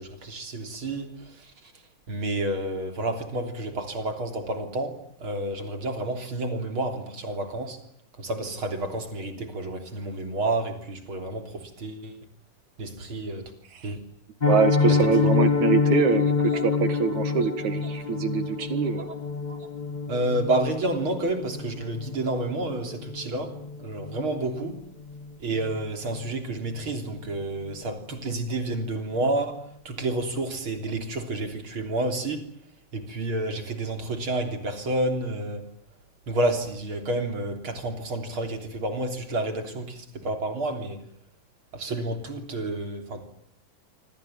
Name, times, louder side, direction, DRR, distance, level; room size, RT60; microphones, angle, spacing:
voice 1, 0.0-1.7 2.1-7.8 8.2-12.2 12.8-13.5 13.8-14.0 14.8-15.1 16.5-16.6 19.1-19.2 19.5-19.7 20.1-24.8 25.4-32.5 32.9-35.7 36.3-41.1 41.7-43.3, right 2 dB, 40° right, 4.0 m, -30 dB
Piano, 14.4-25.3 25.6-25.8 26.1-26.2 26.6-26.8 27.2-27.3, left 5 dB, 70° left, 0.4 m, -27 dB
voice 2, 14.5-19.1, right 7 dB, 65° right, 2.9 m, -24 dB
26.5 x 25.0 x 7.2 m
omnidirectional pair, 3.8 m